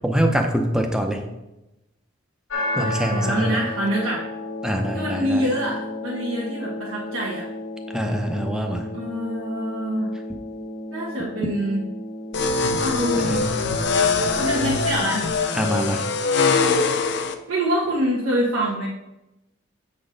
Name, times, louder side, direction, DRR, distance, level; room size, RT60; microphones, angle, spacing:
voice 1, 0.0-1.2 2.8-3.6 4.6-5.4 7.9-8.9 13.1-13.5 15.5-16.1, equal, 5° right, 4 dB, 0.6 m, -24 dB
sound 1, 2.5-14.5, left 1 dB, 80° left, 1.1 m, -33 dB
voice 2, 2.6-4.2 4.9-7.5 8.9-10.1 10.9-11.8 12.8-13.5 14.4-15.2 17.5-18.9, right 1 dB, 85° right, -5 dB, 1.2 m, -25 dB
sound 2, 12.3-17.3, left 4 dB, 55° left, 0.5 m, -22 dB
7.6 x 4.1 x 5.1 m, 0.96 s
head